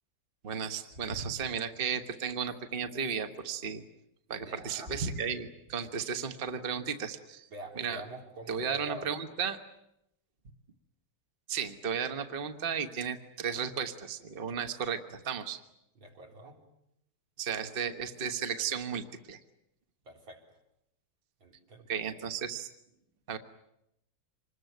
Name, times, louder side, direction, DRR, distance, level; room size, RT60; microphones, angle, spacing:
voice 1, 0.4-3.8 4.3-7.5 7.8-8.0 8.5-9.6 11.5-15.6 17.4-19.4 21.9-22.7 23.3-23.4, right 7 dB, 30° right, 8 dB, 1.3 m, -34 dB
voice 2, 4.3-5.0 7.5-9.2 15.9-16.6 20.0-20.6 21.4-21.9, right 1 dB, 80° right, 1 dB, 4.8 m, -46 dB
26.0 x 21.0 x 9.2 m, 0.81 s
omnidirectional pair, 2.1 m